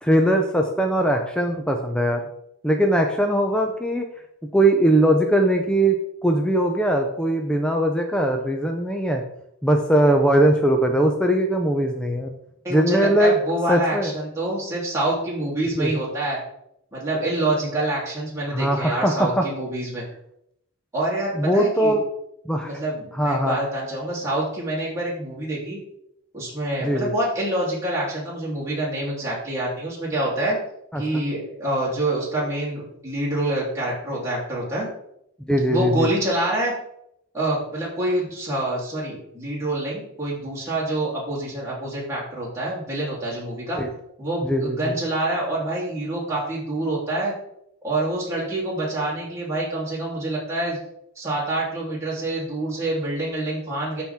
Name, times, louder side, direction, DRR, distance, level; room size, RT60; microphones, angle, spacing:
voice 1, 0.0-2.2 2.6-4.0 4.5-9.2 9.6-12.3 12.7-13.3 13.7-14.1 15.8-15.9 18.5-19.5 21.4-22.0 22.5-22.7 23.1-23.6 26.8-27.1 30.9-31.0 35.5-36.1 43.8-43.9 44.4-44.9, right 1 dB, 5° left, 3 dB, 0.6 m, -20 dB
voice 2, 12.6-16.4 16.9-20.0 20.9-22.0 22.6-25.8 26.3-30.6 30.9-34.9 35.7-36.7 37.3-43.8 44.2-47.3 47.8-50.8 51.1-54.0, right 1 dB, 15° right, -7 dB, 3.2 m, -26 dB
13.0 x 4.4 x 3.6 m, 0.76 s
head